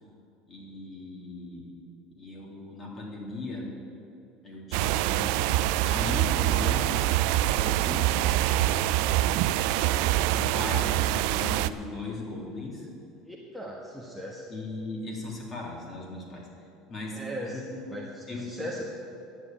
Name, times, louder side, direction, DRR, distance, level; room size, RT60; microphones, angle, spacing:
voice 1, 0.5-1.7 2.2-3.6 4.4-7.1 7.5-9.0 9.8-12.9 14.5-16.5 16.9-17.2 17.5-17.8 18.3-18.5, left 2 dB, 30° left, -2 dB, 3.3 m, -38 dB
sound 1, 4.7-11.7, right 14 dB, 75° right, 0.4 m, -25 dB
voice 2, 9.7-10.0 13.3-14.4 17.1-17.6 17.9-18.8, equal, 5° left, -2 dB, 1.4 m, -38 dB
10.5 x 7.8 x 9.1 m, 2.7 s
supercardioid pair, 120°, 0 cm